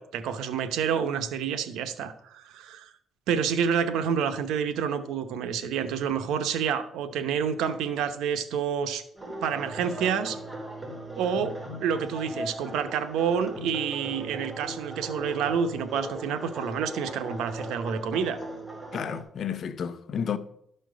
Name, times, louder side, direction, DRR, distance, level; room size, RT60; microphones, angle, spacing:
voice 1, 0.0-2.9 3.3-9.0 9.4-10.4 11.2-18.4, right 7 dB, 85° right, 0.9 m, -28 dB
sound 1, 9.2-19.2, right 1 dB, 20° right, 3.2 m, -38 dB
voice 2, 18.9-20.4, left 7 dB, 60° left, 0.8 m, -31 dB
12.5 x 4.4 x 6.2 m
cardioid pair, 90°, 0 cm